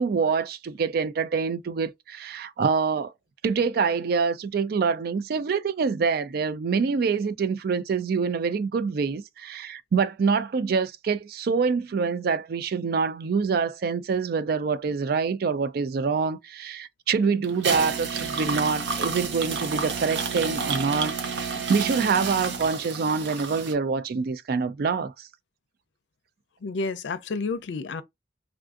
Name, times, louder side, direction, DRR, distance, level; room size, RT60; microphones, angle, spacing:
voice 1, 0.0-3.1 3.4-25.3, right 5 dB, 55° right, 0.4 m, -26 dB
sound 1, 17.4-23.7, right 5 dB, 90° right, 0.7 m, -30 dB
voice 2, 26.6-28.0, left 3 dB, 85° left, 0.5 m, -30 dB
3.5 x 2.5 x 2.3 m
head